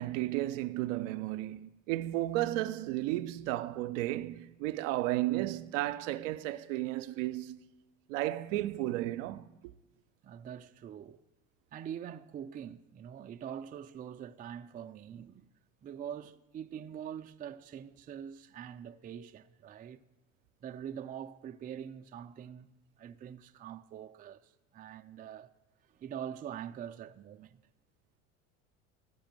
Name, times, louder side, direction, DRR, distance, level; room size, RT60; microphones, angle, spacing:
voice 1, 0.0-7.6 8.1-9.5, right 15 dB, 65° right, 0.6 m, -33 dB
voice 2, 10.2-11.2 11.7-15.5 15.8-20.0 20.6-25.5 25.9-27.6, right 9 dB, 20° right, 0.4 m, -44 dB
14.0 x 5.0 x 8.9 m
hypercardioid pair, 75°, 41 cm